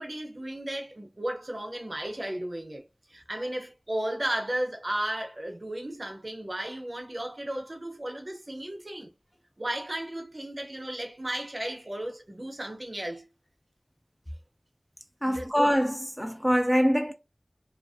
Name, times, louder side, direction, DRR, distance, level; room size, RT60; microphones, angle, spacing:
voice 1, 0.0-2.8 3.1-9.1 9.6-13.3 15.2-15.5, right 1 dB, 50° right, 0.6 m, -34 dB
voice 2, 15.2-17.1, equal, 5° left, 0.3 m, -24 dB
2.4 x 2.0 x 2.5 m
wide cardioid pair, 45°, 0 cm